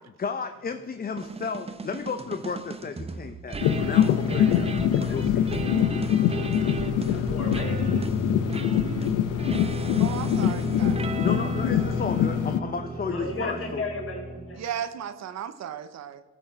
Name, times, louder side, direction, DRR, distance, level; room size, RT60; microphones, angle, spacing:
voice 1, 0.2-4.7 5.0-5.5 11.2-13.8, left 5 dB, 30° left, 0.6 m, -33 dB
sound 1, 1.2-14.7, right 3 dB, 20° right, 0.7 m, -34 dB
sound 2, 3.6-12.6, left 10 dB, 90° left, 0.6 m, -24 dB
voice 2, 6.1-6.7 8.6-8.7 10.0-11.0 14.5-16.2, right 9 dB, 60° right, 0.8 m, -36 dB
voice 3, 7.1-7.9 10.4-10.5 13.1-14.6, left 2 dB, 45° left, 3.9 m, -34 dB
14.5 x 6.1 x 5.3 m
cardioid pair, 90°, 30 cm